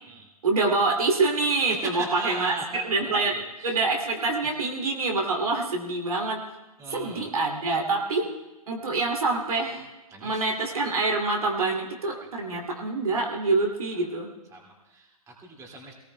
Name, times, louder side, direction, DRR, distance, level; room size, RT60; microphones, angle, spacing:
voice 1, 0.4-2.5 2.8-6.4 6.9-8.3 8.7-9.9 10.2-14.3, right 3 dB, 70° right, 0 dB, 2.5 m, -26 dB
voice 2, 1.7-3.8 4.4-4.5 6.8-7.3 8.2-8.3 10.1-10.4 12.5-12.6 13.3-13.4 13.9-14.0 14.5-15.9, right 3 dB, 15° right, -1 dB, 2.3 m, -38 dB
25.0 x 18.5 x 2.2 m, 1.1 s
figure-of-eight pair, 120°, 19 cm